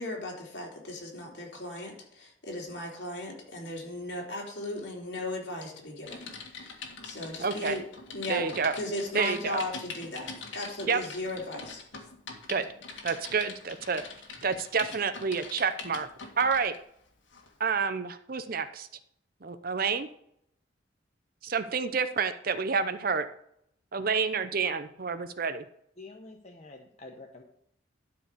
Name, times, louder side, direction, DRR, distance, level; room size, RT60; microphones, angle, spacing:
voice 1, 0.0-6.8 7.0-7.8 8.1-8.4 8.7-12.1, left 1 dB, 65° left, -1 dB, 3.3 m, -37 dB
Typing, 6.1-16.8 17.3-17.5, left 4 dB, 85° left, 2.0 m, -43 dB
voice 2, 7.4-7.8 8.3-8.8 9.1-9.6 10.9-11.0 12.5-12.6 13.0-14.0 14.4-16.1 16.4-16.7 17.6-18.9 19.4-20.1 21.4-23.3 23.9-25.6, right 5 dB, 50° right, 11 dB, 0.7 m, -29 dB
voice 3, 26.0-27.4, left 2 dB, 35° left, 1 dB, 1.0 m, -47 dB
12.0 x 4.9 x 6.7 m, 0.71 s
head